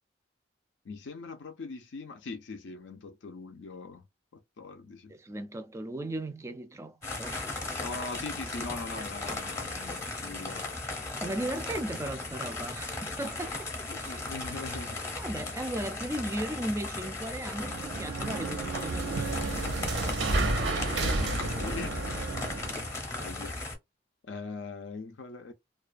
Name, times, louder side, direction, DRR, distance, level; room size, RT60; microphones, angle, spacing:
voice 1, 0.8-4.0 4.3-5.1 7.8-10.7 13.9-15.0 15.3-15.4 21.2-22.1 23.2-23.5 24.2-25.5, left 3 dB, 75° left, 0.5 m, -41 dB
voice 2, 5.1-8.0 11.2-14.2 15.2-19.5, right 1 dB, 15° right, 0.3 m, -37 dB
sound 1, 7.0-23.8, left 2 dB, 15° left, 0.7 m, -37 dB
sound 2, 17.4-23.0, right 2 dB, 85° right, 0.6 m, -31 dB
2.3 x 2.2 x 2.4 m
head